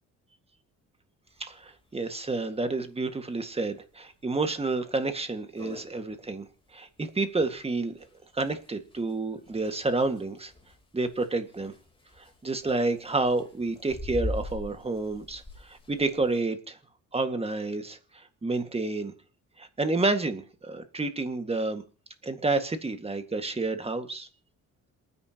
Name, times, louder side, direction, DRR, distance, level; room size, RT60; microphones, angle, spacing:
sound 1, 1.4-1.5 1.7-1.8 2.2-2.3 2.8-3.1 3.6-3.7 4.2-4.3 4.6-4.7 5.1-5.2 5.4-16.4, left 1 dB, 20° left, 3.5 m, -42 dB
voice 1, 1.4-6.5 6.7-7.9 8.3-10.5 10.9-11.7 12.4-15.4 15.7-16.8 17.1-18.0 18.4-19.1 19.6-21.8 22.2-24.3, right 3 dB, 20° right, 8 dB, 1.9 m, -29 dB
27.5 x 9.8 x 3.0 m, 0.37 s
cardioid pair, 90°, 30 cm